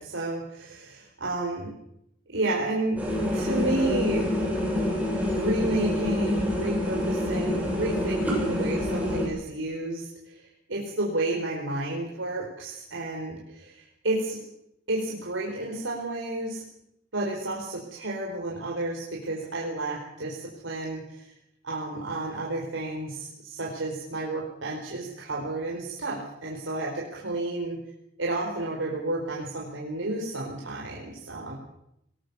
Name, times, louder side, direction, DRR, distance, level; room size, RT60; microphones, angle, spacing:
voice 1, 0.0-1.7 2.3-3.0 3.3-4.3 5.3-14.4 14.9-16.6 17.1-21.3 21.6-27.8 28.2-31.5, right 2 dB, 85° right, -2 dB, 4.4 m, -31 dB
sound 1, 3.0-9.2, left 1 dB, 10° right, 7.7 m, -27 dB
20.5 x 19.5 x 7.0 m, 0.77 s
head